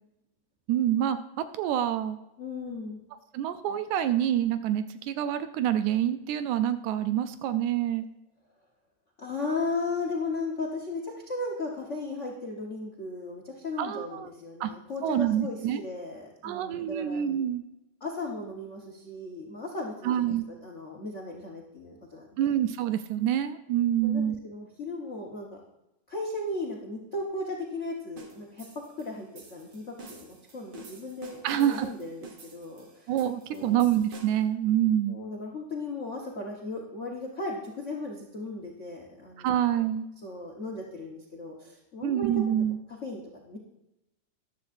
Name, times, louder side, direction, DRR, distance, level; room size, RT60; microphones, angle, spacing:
voice 1, 0.7-2.2 3.3-8.1 13.8-14.3 14.6-14.7 15.0-15.8 16.4-17.6 20.0-20.5 22.4-24.4 31.4-31.9 33.1-35.2 39.4-40.1 42.0-42.8, right 11 dB, 80° right, 11 dB, 1.9 m, -27 dB
voice 2, 2.4-3.0 9.2-17.2 18.0-22.5 24.0-25.6 26.1-33.1 33.5-33.8 35.0-39.7 40.2-42.6 43.0-43.6, left 2 dB, 80° left, 0 dB, 0.6 m, -36 dB
sound 1, 28.2-34.5, right 3 dB, 50° right, 1.4 m, -49 dB
14.0 x 11.0 x 2.6 m, 0.91 s
omnidirectional pair, 3.4 m